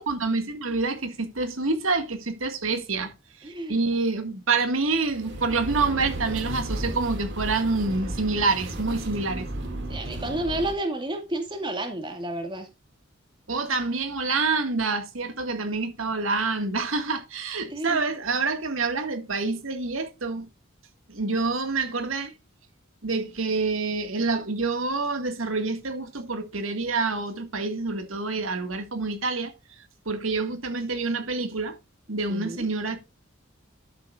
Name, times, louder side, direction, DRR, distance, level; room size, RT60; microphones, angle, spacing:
voice 1, 0.1-3.1 3.4-9.5 13.5-20.5 21.1-22.3 23.0-29.5 30.1-31.8 32.1-33.0, right 3 dB, 85° right, 1.9 m, -27 dB
voice 2, 3.4-3.8 9.9-12.7 17.7-18.0 32.3-32.7, right 1 dB, 25° right, 2.2 m, -31 dB
sound 1, 5.0-10.8, right 1 dB, 60° right, 2.3 m, -34 dB
12.0 x 7.8 x 2.5 m
head